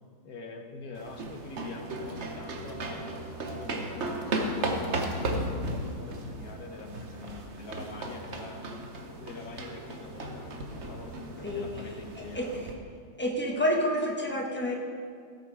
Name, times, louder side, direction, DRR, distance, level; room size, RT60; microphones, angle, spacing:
voice 1, 0.2-8.6 9.2-12.7, left 2 dB, 55° left, 3 dB, 1.3 m, -44 dB
sound 1, 1.0-12.7, right 1 dB, 45° right, 0.9 m, -35 dB
voice 2, 11.4-11.8 12.1-12.7 13.2-14.7, equal, 5° left, -1 dB, 0.9 m, -29 dB
17.0 x 6.8 x 4.8 m, 2.2 s
omnidirectional pair, 2.3 m